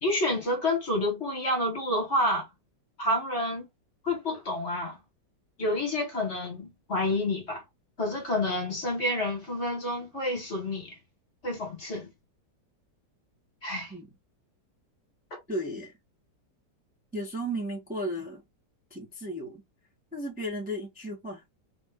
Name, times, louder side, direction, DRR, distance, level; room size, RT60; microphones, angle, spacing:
voice 1, 0.0-2.5 3.0-3.7 4.0-5.0 5.6-7.6 8.0-11.0 11.4-12.1 13.6-13.9, left 1 dB, 40° left, 1.6 m, -29 dB
voice 2, 15.5-15.9 17.1-18.4 18.9-19.6 20.1-21.4, equal, 5° right, 0.9 m, -34 dB
3.4 x 2.6 x 3.5 m
omnidirectional pair, 1.9 m